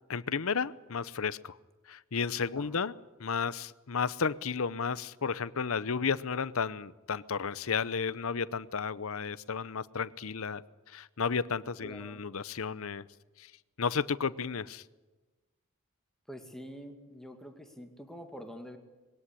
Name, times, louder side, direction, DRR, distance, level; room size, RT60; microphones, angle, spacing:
voice 1, 0.1-1.6 1.9-2.9 3.2-13.1 13.4-13.5 13.8-14.8, left 5 dB, 70° left, 18 dB, 0.7 m, -33 dB
voice 2, 11.8-12.2 16.3-18.8, equal, ahead, 5 dB, 2.3 m, -46 dB
21.5 x 17.5 x 10.0 m, 1.2 s
head